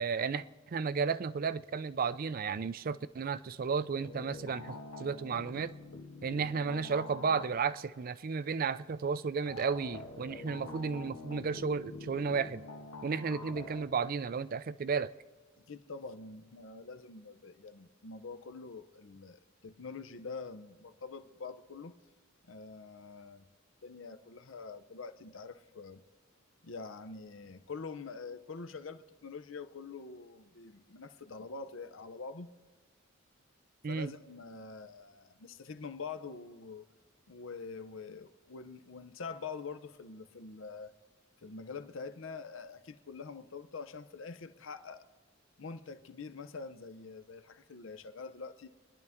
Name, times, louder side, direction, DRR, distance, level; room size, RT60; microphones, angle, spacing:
voice 1, 0.0-5.7 6.2-12.6 13.0-15.1 33.8-34.1, right 5 dB, 45° right, 0.4 m, -33 dB
sound 1, 4.0-7.8 9.5-13.8, left 3 dB, 90° left, 1.6 m, -46 dB
voice 2, 15.7-21.9 22.5-23.5 23.8-26.0 26.6-32.5 33.9-36.9 37.3-40.9 41.4-45.1 45.6-48.7, left 4 dB, 65° left, 0.7 m, -45 dB
25.5 x 11.0 x 3.6 m
head